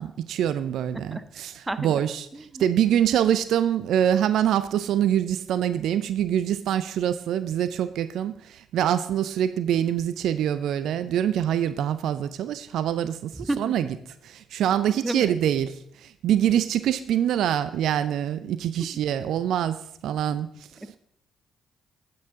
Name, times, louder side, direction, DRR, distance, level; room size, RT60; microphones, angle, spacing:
voice 1, 0.0-20.9, right 10 dB, 65° right, 13 dB, 0.4 m, -25 dB
voice 2, 15.0-15.3, right 1 dB, 15° right, 12 dB, 0.8 m, -29 dB
9.5 x 8.5 x 3.6 m, 0.71 s
hypercardioid pair, 45°, 0 cm